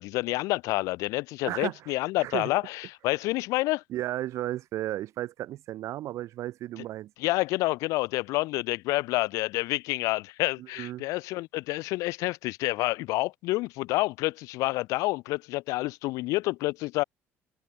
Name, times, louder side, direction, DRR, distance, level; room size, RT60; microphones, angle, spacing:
voice 1, 0.0-3.8 7.2-17.0, left 20 dB, 85° left, 0.4 m, -28 dB
voice 2, 1.4-1.9 2.2-2.5 3.9-7.1 10.6-11.0, right 14 dB, 65° right, 0.9 m, -34 dB
cardioid pair, 115°, 5 cm